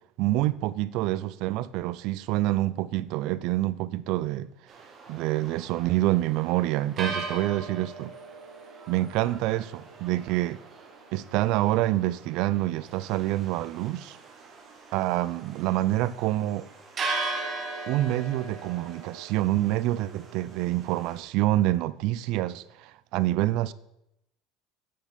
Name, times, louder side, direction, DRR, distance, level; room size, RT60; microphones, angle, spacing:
voice 1, 0.2-4.5 5.1-8.1 8.9-10.6 11.1-14.2 14.9-16.7 17.9-23.7, right 15 dB, 65° right, 0.4 m, -27 dB
sound 1, 4.7-21.2, right 3 dB, 30° right, 1.6 m, -39 dB
8.7 x 5.2 x 5.8 m
supercardioid pair, 125°, 0 cm